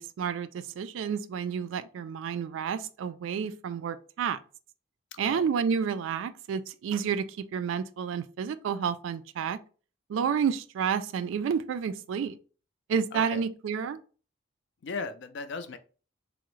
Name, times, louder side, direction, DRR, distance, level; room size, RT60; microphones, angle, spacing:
voice 1, 0.0-4.4 5.2-9.6 10.1-12.4 12.9-14.0, right 7 dB, 75° right, 0.3 m, -30 dB
voice 2, 13.1-13.4 14.8-15.8, left 4 dB, 60° left, 0.4 m, -37 dB
3.5 x 2.0 x 3.0 m
head